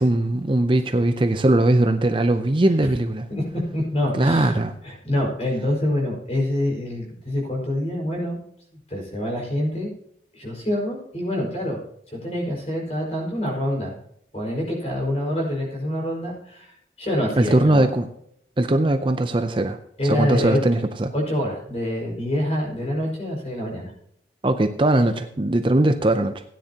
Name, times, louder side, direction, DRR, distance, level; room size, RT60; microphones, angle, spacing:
voice 1, 0.0-3.3 4.1-4.7 17.4-18.1 18.6-19.8 20.0-21.1 24.4-26.4, right 1 dB, 30° right, 8 dB, 0.5 m, -20 dB
voice 2, 3.7-4.5 4.8-8.4 8.9-9.9 10.3-11.8 12.1-13.9 14.3-16.7 17.0-17.9 20.0-20.6 21.1-23.9, left 1 dB, 35° left, -1 dB, 5.0 m, -26 dB
16.5 x 9.9 x 2.9 m, 0.71 s
head